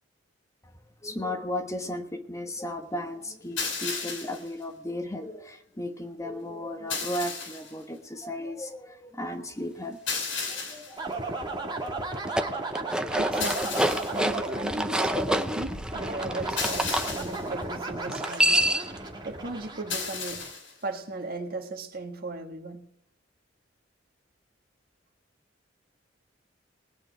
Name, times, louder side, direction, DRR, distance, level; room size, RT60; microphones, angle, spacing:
voice 1, 1.0-11.3 12.6-13.1 14.0-14.2, left 1 dB, 15° left, 5 dB, 1.2 m, -36 dB
sound 1, 3.6-4.5 6.9-7.7 10.1-11.0 13.4-14.2 16.6-17.5 19.9-20.7, left 4 dB, 90° left, 4.9 m, -33 dB
sound 2, 11.0-20.5, right 2 dB, 25° right, 2.0 m, -34 dB
sound 3, 12.1-17.1 18.1-19.0, right 1 dB, 5° right, 0.6 m, -27 dB
voice 2, 13.1-18.6 19.2-20.4 20.8-22.8, right 2 dB, 50° right, 4 dB, 1.6 m, -37 dB
20.0 x 8.8 x 4.7 m, 0.72 s
head